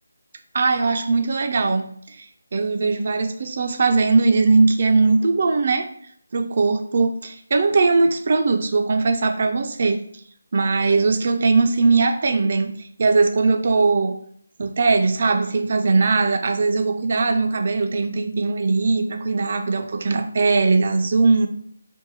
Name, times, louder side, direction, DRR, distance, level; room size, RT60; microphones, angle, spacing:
voice 1, 0.5-1.8 2.2-2.3 2.5-5.9 6.3-10.0 10.5-14.2 14.6-21.5, right 3 dB, 45° right, 6 dB, 0.3 m, -20 dB
2.6 x 2.2 x 2.8 m, 0.64 s
figure-of-eight pair, 160°, 0 cm